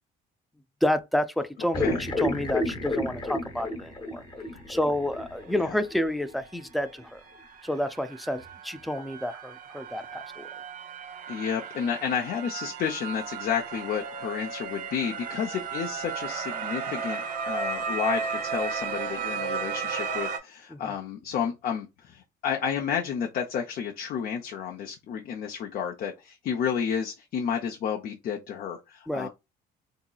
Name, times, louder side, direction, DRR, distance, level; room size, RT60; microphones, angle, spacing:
voice 1, 0.8-4.2 4.5-7.2 7.6-10.5 20.7-20.9 29.1-29.3, left 1 dB, ahead, 0.3 m, -29 dB
sound 1, 1.7-6.0 6.3-6.4 8.4-8.5 9.0-9.1, left 2 dB, 25° left, 0.9 m, -31 dB
sound 2, 5.9-6.0 6.3-20.4, right 6 dB, 55° right, 0.7 m, -35 dB
voice 2, 11.3-29.3, left 7 dB, 60° left, 0.6 m, -31 dB
3.8 x 2.8 x 2.3 m
cardioid pair, 110°, 17 cm